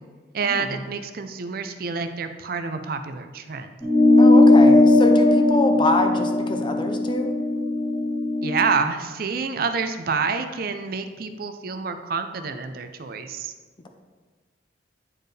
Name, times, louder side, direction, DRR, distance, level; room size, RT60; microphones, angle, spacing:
voice 1, 0.3-3.7 8.4-13.5, right 5 dB, 60° right, 8 dB, 0.5 m, -28 dB
sound 1, 3.8-8.6, left 2 dB, 5° left, 1.6 m, -17 dB
voice 2, 4.2-7.3, left 1 dB, 30° left, 5 dB, 0.6 m, -25 dB
9.9 x 4.4 x 3.3 m, 1.4 s
head